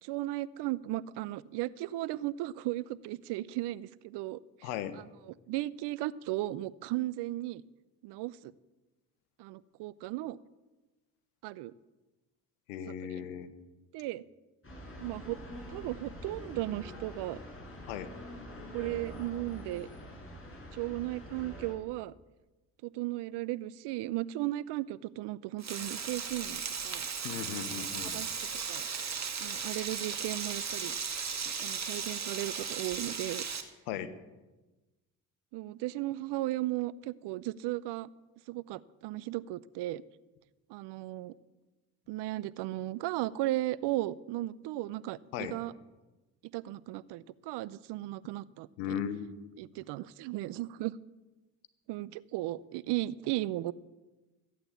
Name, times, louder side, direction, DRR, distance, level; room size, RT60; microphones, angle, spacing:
voice 1, 0.0-4.7 5.5-7.6 8.0-8.5 9.4-10.4 11.4-11.7 13.1-13.2 13.9-14.2 15.0-15.4 15.7-17.4 18.7-19.9 20.7-22.1 22.8-27.1 27.6-27.8 28.1-28.3 28.7-28.9 29.4-30.9 31.6-33.4 35.5-38.1 38.5-40.0 40.7-41.3 42.1-45.7 46.5-49.0 49.6-50.9 51.9-53.7, right 16 dB, 70° right, 19 dB, 0.7 m, -36 dB
voice 2, 4.6-5.0 12.7-13.5 17.9-18.1 27.2-28.2 33.9-34.1 45.3-45.6 48.8-49.6, left 9 dB, 90° left, 12 dB, 1.2 m, -37 dB
sound 1, 14.6-21.7, left 1 dB, 30° left, 6.5 m, -45 dB
Frying (food), 25.6-33.6, right 6 dB, 40° right, 2.1 m, -36 dB
14.5 x 8.9 x 8.1 m, 1.1 s
hypercardioid pair, 55°, 43 cm